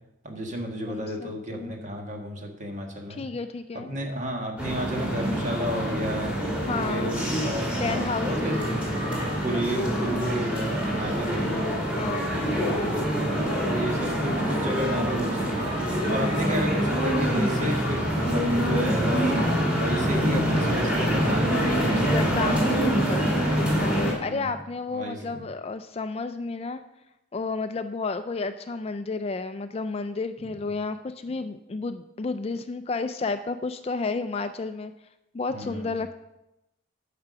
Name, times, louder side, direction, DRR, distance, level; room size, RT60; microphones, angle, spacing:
voice 1, 0.2-3.2 3.9-6.3 6.9-8.6 9.4-11.7 12.6-13.1 13.6-22.1 24.2-24.5 24.9-25.4 35.5-35.9, equal, 35° right, 2 dB, 1.7 m, -32 dB
voice 2, 0.9-1.8 3.1-3.9 6.7-7.1 7.7-8.8 9.5-10.2 11.4-13.8 14.4-14.9 22.0-26.8 27.3-34.9 35.3-36.2, left 3 dB, 30° left, 10 dB, 0.3 m, -32 dB
sound 1, 4.6-24.1, equal, 5° right, 2.5 m, -26 dB
sound 2, 10.9-22.3, right 1 dB, 75° right, 3.1 m, -39 dB
10.5 x 5.9 x 6.7 m, 0.92 s
head